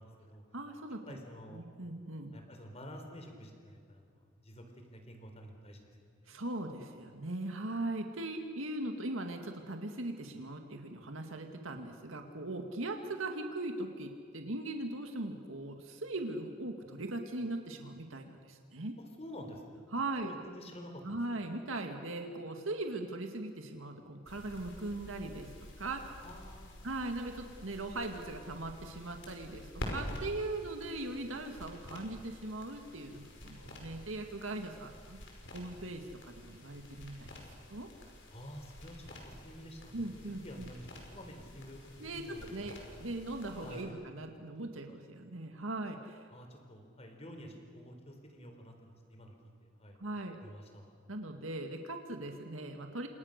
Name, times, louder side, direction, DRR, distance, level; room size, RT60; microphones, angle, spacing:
voice 1, 0.0-0.4 1.1-1.7 2.3-5.9 6.2-6.4 19.0-19.9 20.2-21.2 26.2-26.9 38.3-43.0 43.6-43.9 46.3-49.3 49.6-50.0 50.4-51.0, equal, 30° left, 4 dB, 4.0 m, -50 dB
voice 2, 0.5-1.0 1.5-2.3 6.3-19.0 19.9-20.3 21.0-25.5 25.8-26.0 26.8-35.2 35.5-37.3 37.7-37.9 39.9-40.7 42.0-46.3 50.0-50.4 51.1-53.1, right 2 dB, 80° right, 4 dB, 2.1 m, -40 dB
sound 1, 24.3-43.8, left 1 dB, 65° left, 5.5 m, -48 dB
29.5 x 27.0 x 6.7 m, 2.1 s
head